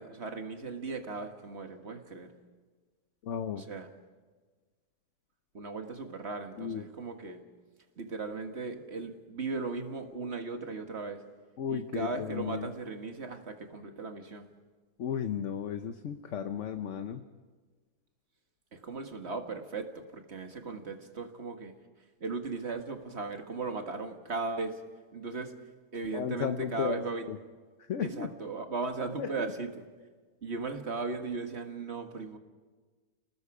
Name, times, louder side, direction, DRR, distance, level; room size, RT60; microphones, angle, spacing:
voice 1, 0.0-2.3 3.6-3.9 5.5-7.4 8.0-11.2 11.7-14.5 18.7-21.7 22.2-24.8 25.1-25.6 25.9-27.3 28.0-29.9 30.4-32.4, right 4 dB, 45° right, 5 dB, 1.8 m, -37 dB
voice 2, 3.2-3.6 6.6-6.9 11.6-12.7 15.0-17.2 26.1-27.0 27.3-27.4 27.8-28.3 29.2-29.5, left 8 dB, 55° left, 8 dB, 1.1 m, -34 dB
30.0 x 19.5 x 4.9 m, 1.4 s
omnidirectional pair, 1.7 m